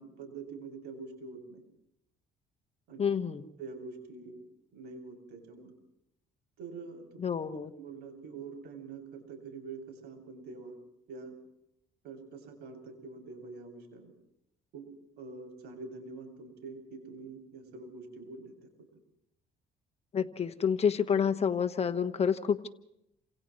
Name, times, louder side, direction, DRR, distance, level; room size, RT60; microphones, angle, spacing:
voice 1, 0.0-1.6 2.9-3.0 3.6-4.4 4.7-5.7 6.6-7.2 7.8-10.7 11.1-11.3 12.0-14.1 14.7-14.9 15.2-18.5, right 4 dB, 80° right, 3 dB, 7.6 m, -45 dB
voice 2, 3.0-3.4 7.2-7.7 20.1-22.7, left 7 dB, 40° left, 8 dB, 1.4 m, -28 dB
29.5 x 27.5 x 3.2 m, 0.81 s
cardioid pair, 110°, 17 cm